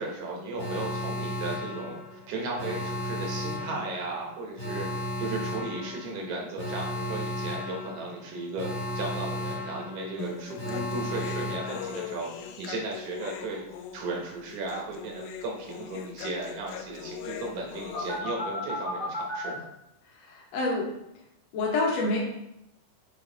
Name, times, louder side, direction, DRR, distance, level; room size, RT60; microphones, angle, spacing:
voice 1, 0.0-13.6 13.9-19.6, right 2 dB, 75° right, -1 dB, 1.4 m, -35 dB
Alarm, 0.6-12.5 17.9-19.5, left 1 dB, 40° left, 1.0 m, -35 dB
Human voice, 10.2-18.2, left 8 dB, 85° left, 2.4 m, -41 dB
voice 2, 20.2-20.9 21.5-22.2, left 2 dB, 60° left, -2 dB, 1.9 m, -28 dB
7.8 x 3.5 x 3.9 m, 0.84 s
omnidirectional pair, 4.4 m